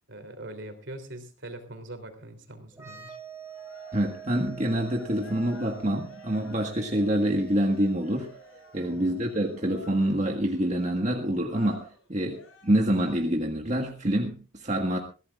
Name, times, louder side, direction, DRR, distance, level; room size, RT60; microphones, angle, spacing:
voice 1, 0.1-3.2 8.9-9.2, right 1 dB, 60° right, 7 dB, 3.3 m, -42 dB
sound 1, 2.7-10.2, right 8 dB, 15° right, 5.3 m, -47 dB
Cheering, 3.4-13.5, left 1 dB, 75° left, 7.4 m, -50 dB
voice 2, 3.9-8.3 8.7-12.4 12.6-15.0, right 1 dB, 35° right, 2 dB, 1.6 m, -26 dB
22.5 x 16.0 x 2.5 m, 0.34 s
head